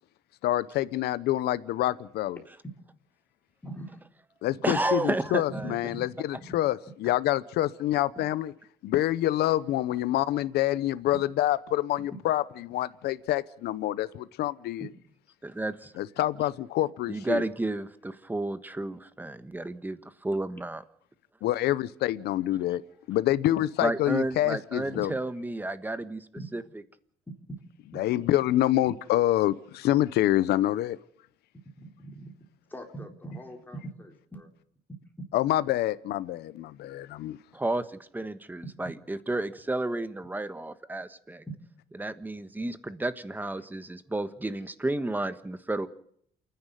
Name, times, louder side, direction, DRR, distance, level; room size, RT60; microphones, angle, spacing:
voice 1, 0.4-2.4 4.4-8.5 8.8-14.9 16.0-17.4 21.4-22.8 23.1-25.1 27.9-31.0 35.3-37.4, left 14 dB, 75° left, 16 dB, 0.9 m, -27 dB
voice 2, 3.6-4.0 5.6-6.0 24.9-25.0 26.4-26.5 27.5-27.6 27.9-28.0 31.8-32.3 32.7-34.5, right 1 dB, 10° left, 2 dB, 4.2 m, -41 dB
voice 3, 4.6-5.7 15.4-15.9 17.1-20.8 23.8-26.3 26.5-26.6 37.5-41.4 42.0-45.9, right 2 dB, 10° right, 12 dB, 1.3 m, -32 dB
28.5 x 10.5 x 9.3 m, 0.67 s
cardioid pair, 110°, 17 cm